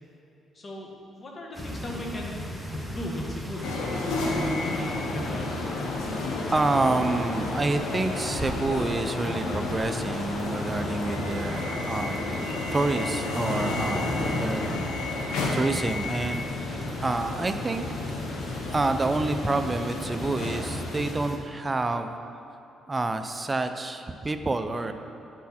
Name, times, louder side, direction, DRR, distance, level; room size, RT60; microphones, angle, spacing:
voice 1, 0.5-0.9 1.2-2.5 2.8-3.8 4.3-5.6, left 1 dB, 35° left, -1 dB, 1.6 m, -37 dB
sound 1, 1.5-21.4, equal, 10° left, 1.1 m, -37 dB
sound 2, 3.6-21.1, left 2 dB, 90° left, 1.0 m, -31 dB
voice 2, 6.5-14.9 15.5-17.9 18.7-22.2 22.9-24.9, right 2 dB, 25° right, 7 dB, 0.5 m, -28 dB
9.3 x 6.2 x 4.3 m, 2.8 s
cardioid pair, 90°, 0 cm